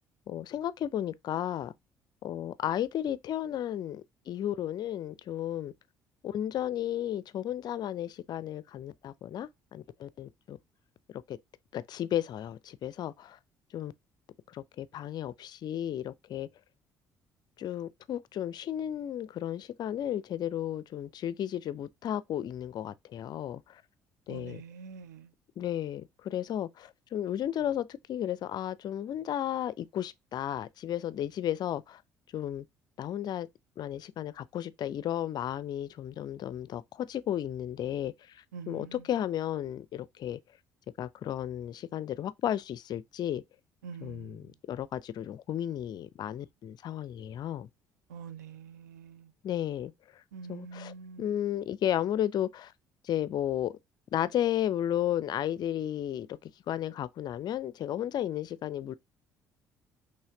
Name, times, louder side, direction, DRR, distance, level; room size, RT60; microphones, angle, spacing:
voice 1, 0.3-1.7 2.2-5.7 6.2-10.6 11.3-11.4 11.7-13.4 13.7-13.9 14.5-16.5 17.6-23.8 24.3-24.6 25.6-32.0 32.3-32.7 33.0-33.5 33.8-40.4 41.0-43.4 44.0-47.7 49.4-49.9 50.5-52.7 53.0-53.8 54.1-58.9, left 11 dB, 50° left, 0.4 m, -33 dB
voice 2, 24.3-25.3 38.5-39.0 43.8-44.4 48.1-49.3 50.3-51.3, right 5 dB, 80° right, 0.6 m, -45 dB
5.6 x 3.2 x 2.8 m
figure-of-eight pair, 50°, 9 cm